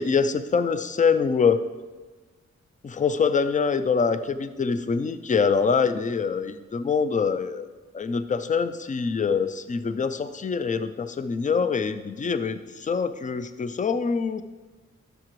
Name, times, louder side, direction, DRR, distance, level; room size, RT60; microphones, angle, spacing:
voice 1, 0.0-1.6 2.8-7.7 7.9-14.4, left 5 dB, 25° left, 12 dB, 0.4 m, -24 dB
12.5 x 6.5 x 3.1 m, 1.3 s
wide cardioid pair, 140°, 29 cm